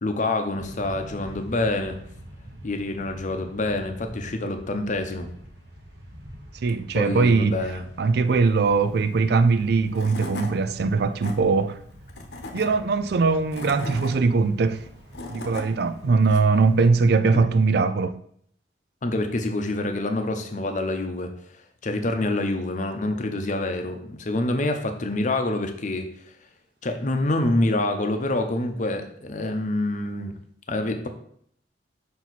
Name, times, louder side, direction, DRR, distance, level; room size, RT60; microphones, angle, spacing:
voice 1, 0.0-2.0 2.6-5.3 6.9-7.8 16.0-16.1 17.3-17.5 19.0-21.3 21.8-26.2 26.8-30.3 30.7-31.1, left 2 dB, 45° left, 0.7 m, -26 dB
sound 1, 0.6-17.6, equal, 80° right, 1.4 m, -45 dB
voice 2, 6.6-7.6 8.0-11.8 12.5-14.8 15.3-18.2, right 4 dB, 65° right, 0.4 m, -21 dB
Tools / Wood, 9.6-9.7 9.9-10.5 11.0-11.3 12.1-12.7 13.3-14.1 14.9-15.7, left 2 dB, 70° left, 1.0 m, -35 dB
5.6 x 4.5 x 4.0 m
head